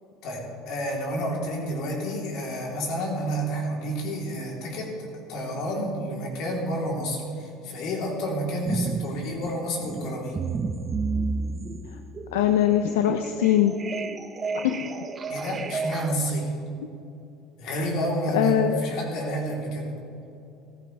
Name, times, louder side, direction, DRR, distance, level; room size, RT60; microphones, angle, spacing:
voice 1, 0.2-10.4 15.3-16.5 17.6-19.9, right 1 dB, 65° left, -2 dB, 3.5 m, -30 dB
sound 1, 8.6-9.1 9.4-16.3, right 4 dB, 30° right, 0.8 m, -32 dB
voice 2, 12.3-13.7 14.5-14.9 17.7-17.9 18.3-18.8, left 11 dB, 90° left, 7 dB, 0.5 m, -22 dB
15.5 x 14.5 x 3.4 m, 2.7 s
supercardioid pair, 100°, 0 cm